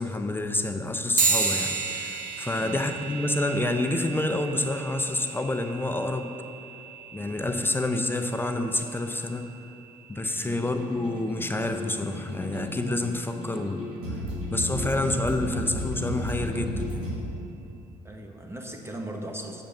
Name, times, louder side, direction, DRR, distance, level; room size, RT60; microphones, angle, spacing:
voice 1, 0.0-6.3 7.1-9.5 10.1-14.2 14.5-17.1, left 2 dB, 15° left, 6 dB, 0.6 m, -28 dB
sound 1, 1.2-11.0, right 4 dB, 60° right, 1.1 m, -33 dB
sound 2, 10.4-17.2, equal, 80° right, 1.9 m, -34 dB
voice 2, 18.0-19.6, right 1 dB, 15° right, 2 dB, 1.3 m, -38 dB
7.2 x 5.1 x 7.1 m, 2.7 s
hypercardioid pair, 60°, 16 cm